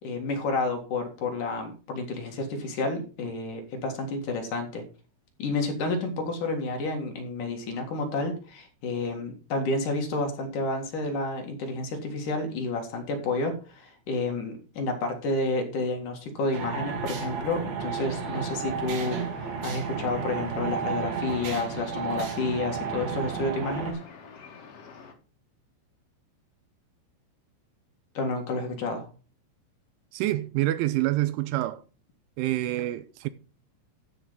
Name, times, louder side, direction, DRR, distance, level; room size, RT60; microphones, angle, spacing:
voice 1, 0.0-4.8 5.4-19.2 19.6-24.0 28.1-29.1, left 2 dB, 55° left, 2.7 m, -30 dB
sound 1, 16.5-23.9, right 6 dB, 55° right, 3.3 m, -33 dB
sound 2, 18.2-25.1, left 5 dB, 70° left, 1.4 m, -47 dB
voice 2, 30.1-31.8 32.4-33.3, right 16 dB, 80° right, 2.9 m, -27 dB
13.0 x 5.9 x 5.5 m
omnidirectional pair, 5.8 m